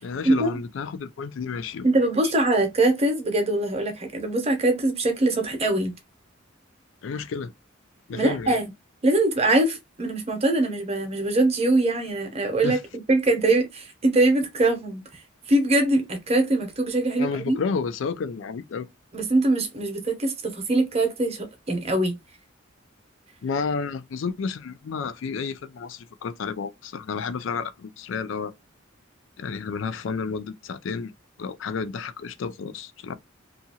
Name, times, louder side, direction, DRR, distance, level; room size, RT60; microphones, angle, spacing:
voice 1, 0.0-1.9 7.0-7.5 8.1-8.6 12.6-12.8 17.2-18.9 23.4-28.5 29.4-31.1 31.4-33.2, left 5 dB, 70° left, 0.4 m, -31 dB
voice 2, 1.8-5.9 8.1-8.6 9.0-12.8 13.1-15.0 15.5-17.6 19.1-22.2, right 2 dB, 30° right, 0.7 m, -22 dB
2.8 x 2.4 x 2.8 m
head